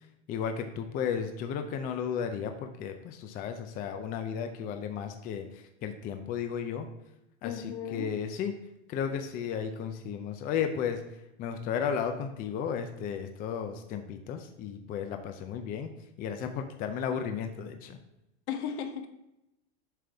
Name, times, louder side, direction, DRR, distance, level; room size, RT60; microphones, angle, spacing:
voice 1, 0.3-6.9 7.4-8.5 8.9-11.0 11.4-15.9 16.2-18.0, left 7 dB, 25° left, 6 dB, 0.5 m, -34 dB
voice 2, 7.4-8.1 18.5-19.1, left 7 dB, 70° left, 6 dB, 1.1 m, -35 dB
7.5 x 5.2 x 3.4 m, 0.90 s
supercardioid pair, 130°, 35 cm